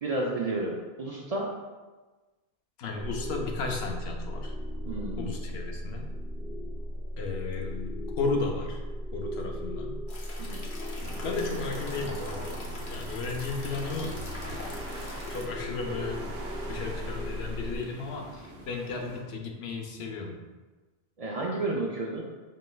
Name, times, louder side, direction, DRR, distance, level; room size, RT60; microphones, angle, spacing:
voice 1, 0.0-1.5 4.9-5.3 10.4-10.7 21.2-22.2, right 2 dB, 55° right, -2 dB, 0.4 m, -31 dB
voice 2, 2.8-4.5 5.2-6.1 7.2-8.8 9.1-10.0 11.2-12.6 12.9-14.7 15.3-16.2 16.7-20.4, left 4 dB, 85° left, 2 dB, 0.9 m, -34 dB
sound 1, 3.0-17.8, equal, ahead, 0.4 m, -37 dB
sound 2, 10.1-15.4, left 2 dB, 55° left, 0.8 m, -44 dB
sound 3, 10.9-19.2, right 1 dB, 70° right, 1.1 m, -43 dB
5.2 x 3.1 x 2.2 m, 1.3 s
omnidirectional pair, 1.1 m